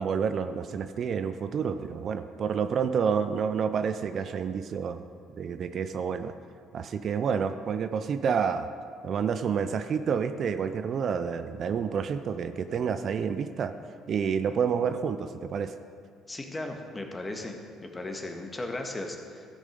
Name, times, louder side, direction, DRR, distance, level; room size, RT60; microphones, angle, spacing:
voice 1, 0.0-5.0 5.4-6.3 6.7-8.7 9.0-13.7 14.1-15.7, right 6 dB, 55° right, 10 dB, 0.5 m, -29 dB
voice 2, 16.3-17.6 17.8-19.5, left 2 dB, 20° left, 3 dB, 1.7 m, -36 dB
14.0 x 6.3 x 5.2 m, 2.3 s
hypercardioid pair, 60°, 0 cm